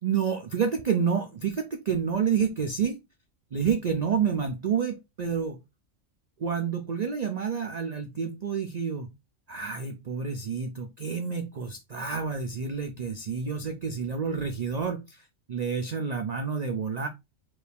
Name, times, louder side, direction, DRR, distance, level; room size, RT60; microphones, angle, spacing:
voice 1, 0.0-3.0 3.5-5.6 6.4-9.1 9.5-17.1, right 6 dB, 75° right, 5 dB, 0.3 m, -29 dB
4.6 x 2.6 x 3.4 m, 0.23 s
omnidirectional pair, 1.4 m